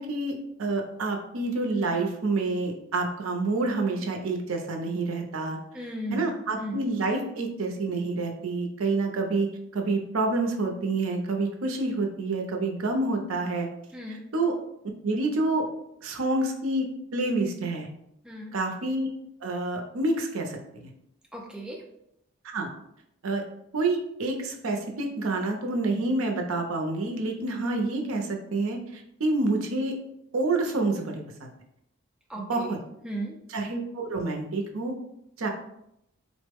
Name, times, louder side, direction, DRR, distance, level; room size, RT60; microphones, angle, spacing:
voice 1, 0.0-5.6 6.1-13.7 14.1-14.6 15.0-15.7 16.0-17.9 18.5-19.1 19.4-20.9 22.5-22.7 23.2-23.4 23.7-30.0 30.3-31.5 32.3-32.8 33.5-34.9 35.4-35.5, right 2 dB, 75° right, 2 dB, 0.5 m, -28 dB
voice 2, 5.7-6.3 6.6-6.8 13.9-14.2 18.2-18.5 21.3-21.8 32.3-32.8 33.0-33.4, right 1 dB, 5° right, -2 dB, 0.3 m, -35 dB
3.6 x 2.1 x 3.4 m, 0.79 s
head